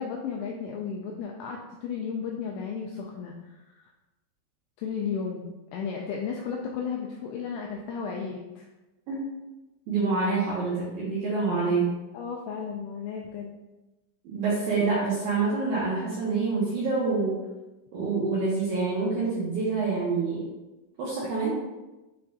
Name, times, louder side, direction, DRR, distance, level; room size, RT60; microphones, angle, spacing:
voice 1, 0.0-3.9 4.8-5.5 5.7-8.7 12.1-13.6 21.2-21.3, left 6 dB, 90° left, 0 dB, 2.6 m, -34 dB
voice 2, 9.9-11.9 14.2-17.4 17.9-20.4 21.0-21.5, right 4 dB, 75° right, -8 dB, 2.2 m, -26 dB
9.0 x 4.1 x 2.6 m, 1.1 s
omnidirectional pair, 5.9 m